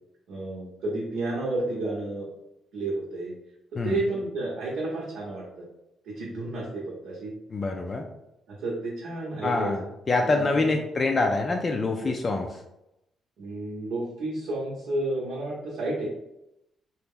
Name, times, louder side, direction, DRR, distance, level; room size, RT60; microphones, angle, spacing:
voice 1, 0.3-2.3 2.7-3.3 3.8-5.6 6.0-7.3 8.5-9.7 10.2-10.4 13.4-16.1, right 2 dB, 80° right, -5 dB, 0.8 m, -31 dB
voice 2, 7.5-8.1 9.4-12.6, left 3 dB, 35° left, 3 dB, 0.3 m, -26 dB
2.9 x 2.1 x 3.5 m, 0.87 s
cardioid pair, 90°, 0 cm